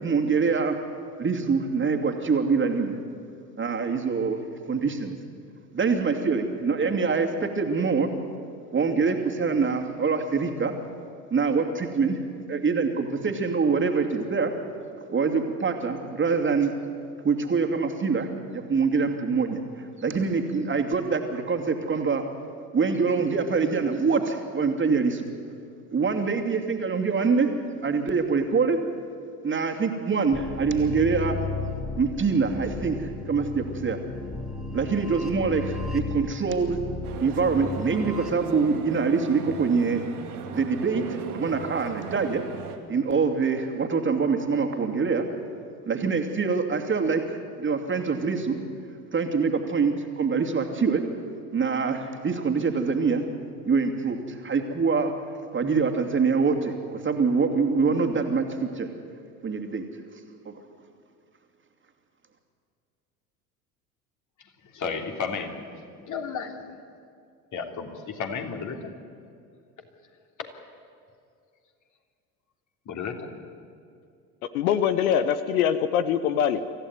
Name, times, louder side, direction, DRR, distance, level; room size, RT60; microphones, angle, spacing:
voice 1, 0.0-0.8 1.2-3.0 3.6-4.4 4.7-5.2 5.7-8.1 8.7-10.7 11.3-12.2 12.5-14.5 15.1-16.7 17.2-22.2 22.7-25.3 25.9-27.5 27.8-28.8 29.4-31.4 32.0-34.0 34.7-36.8 37.2-40.0 40.5-42.4 42.9-45.3 45.9-48.6 49.1-51.0 51.5-53.2 53.7-55.1 55.5-58.9 59.4-59.8 60.4-60.6, right 5 dB, 25° right, 4 dB, 2.7 m, -25 dB
sound 1, 30.3-38.3, left 3 dB, ahead, 2.3 m, -35 dB
sound 2, 37.0-42.8, right 6 dB, 75° right, 2.3 m, -38 dB
voice 2, 64.7-65.6 65.9-66.6 67.5-68.9 72.9-73.3, left 5 dB, 40° left, 4 dB, 3.1 m, -33 dB
voice 3, 74.5-76.7, left 9 dB, 65° left, 12 dB, 1.0 m, -23 dB
25.0 x 15.0 x 9.5 m, 2.4 s
figure-of-eight pair, 70°, 46 cm